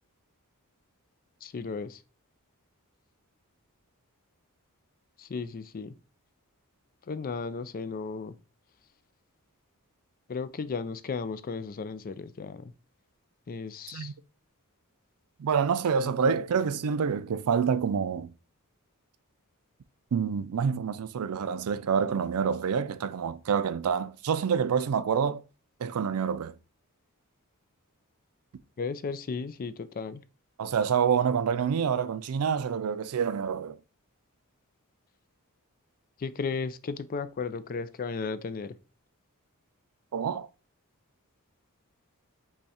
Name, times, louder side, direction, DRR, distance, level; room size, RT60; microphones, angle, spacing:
voice 1, 1.4-2.0 5.2-5.9 7.1-8.3 10.3-12.7 13.5-14.1 16.0-16.4 28.8-30.2 36.2-38.7, left 4 dB, 40° left, 0.4 m, -35 dB
voice 2, 15.4-18.3 20.1-25.4 25.8-26.5 30.6-33.8 40.1-40.5, right 6 dB, 75° right, 0.4 m, -27 dB
5.4 x 2.3 x 4.1 m
head